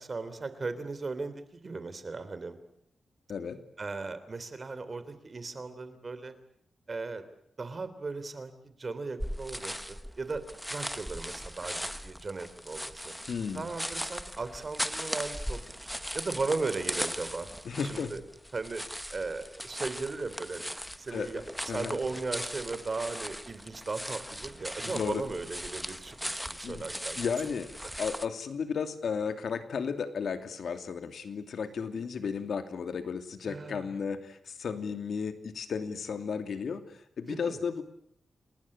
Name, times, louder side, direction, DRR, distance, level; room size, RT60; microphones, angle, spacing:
voice 1, 0.0-2.6 3.8-6.3 6.9-7.2 7.6-13.1 13.5-15.7 16.1-17.5 17.8-18.2 18.5-18.8 19.1-20.7 21.0-27.2 33.5-33.9 37.3-37.6, right 3 dB, 35° right, 12 dB, 3.2 m, -37 dB
sound 1, 9.2-28.3, equal, ahead, 1.0 m, -39 dB
voice 2, 13.3-13.7 17.6-18.1 21.1-21.4 21.7-22.0 24.8-25.2 26.6-26.8 27.2-27.7 28.0-37.8, left 6 dB, 70° left, 8 dB, 2.7 m, -34 dB
29.5 x 20.0 x 8.6 m, 0.70 s
wide cardioid pair, 140°, 0 cm